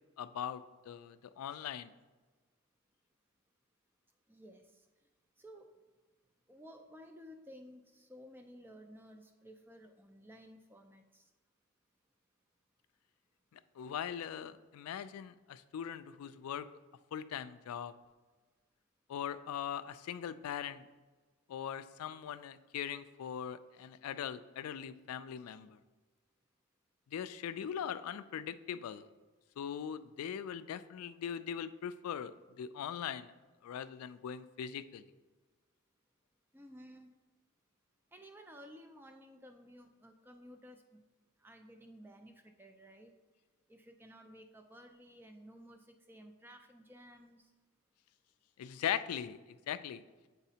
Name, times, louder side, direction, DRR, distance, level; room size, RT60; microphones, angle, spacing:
voice 1, 0.2-1.9 13.5-16.7 17.1-17.9 19.1-20.8 21.5-25.8 27.1-29.1 29.6-32.3 32.6-33.3 33.6-35.0 48.6-49.4 49.7-50.0, left 9 dB, 90° left, 13 dB, 0.3 m, -40 dB
voice 2, 4.3-4.9 5.4-5.7 6.5-11.3 36.5-37.1 38.1-41.0 41.4-43.1 43.7-47.5, equal, 10° right, 6 dB, 0.3 m, -55 dB
8.9 x 4.0 x 2.8 m, 1.3 s
head